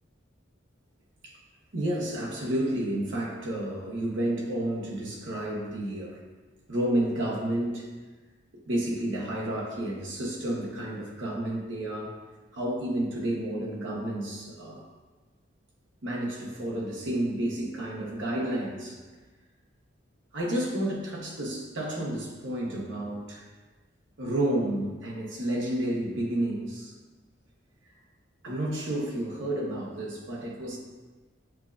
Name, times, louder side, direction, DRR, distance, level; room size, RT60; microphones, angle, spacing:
voice 1, 1.7-6.2 6.7-7.9 8.7-12.1 12.5-14.8 16.0-19.0 20.3-23.4 24.2-26.9 28.4-30.8, right 1 dB, 75° right, -3 dB, 0.9 m, -30 dB
7.1 x 2.5 x 2.3 m, 1.3 s
head